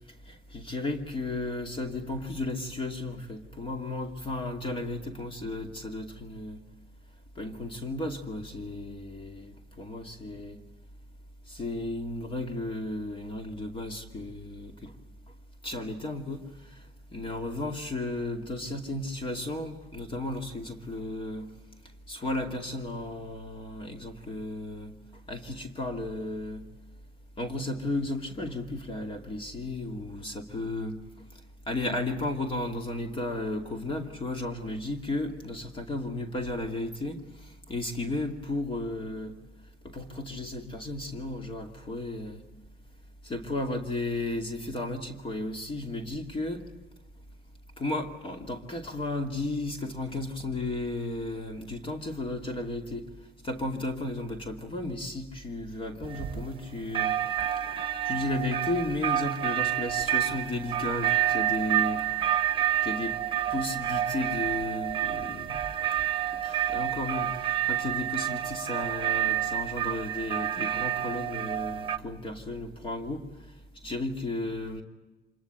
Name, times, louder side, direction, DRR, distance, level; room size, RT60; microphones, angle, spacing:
voice 1, 0.3-6.6 7.4-10.6 11.5-14.9 15.6-16.8 17.1-21.5 22.1-24.9 25.3-26.6 27.4-31.0 31.7-39.3 39.8-42.4 43.2-46.6 47.8-53.0 53.4-57.2 57.6-57.7 58.0-62.0 62.8-63.2 63.5-65.6 66.4-73.3 73.8-74.8, left 2 dB, 30° left, 4 dB, 2.6 m, -34 dB
sound 1, 56.0-56.6 56.9-72.0, right 11 dB, 30° right, 1.2 m, -29 dB
26.5 x 21.5 x 9.0 m, 1.2 s
cardioid pair, 110°, 17 cm